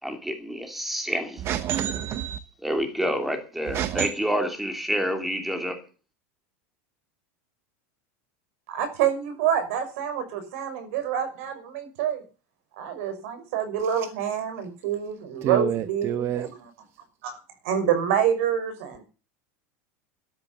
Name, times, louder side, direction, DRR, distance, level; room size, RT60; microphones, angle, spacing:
voice 1, 0.0-1.4 2.6-5.8, equal, ahead, 2.8 m, -28 dB
voice 2, 1.4-2.4 3.7-4.1 13.8-14.1 15.4-16.6, right 10 dB, 30° right, 0.9 m, -28 dB
voice 3, 8.7-12.2 12.8-16.7 17.2-17.4 17.6-19.0, right 9 dB, 65° right, 5.8 m, -27 dB
13.0 x 10.5 x 7.0 m
supercardioid pair, 155°, 8 cm